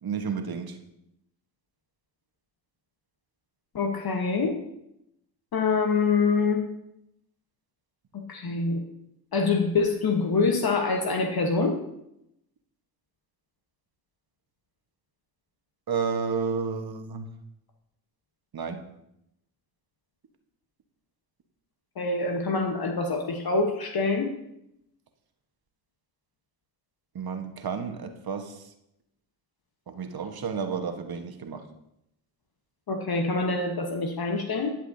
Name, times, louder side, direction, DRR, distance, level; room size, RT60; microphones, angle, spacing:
voice 1, 0.0-0.8 15.9-17.3 18.5-18.9 27.1-28.7 29.9-31.7, right 5 dB, 45° right, 6 dB, 1.3 m, -31 dB
voice 2, 3.7-4.6 5.5-6.7 8.1-8.8 9.3-11.7 22.0-24.3 32.9-34.7, left 4 dB, 45° left, 4 dB, 1.2 m, -25 dB
11.0 x 7.3 x 2.7 m, 0.82 s
hypercardioid pair, 45°, 50 cm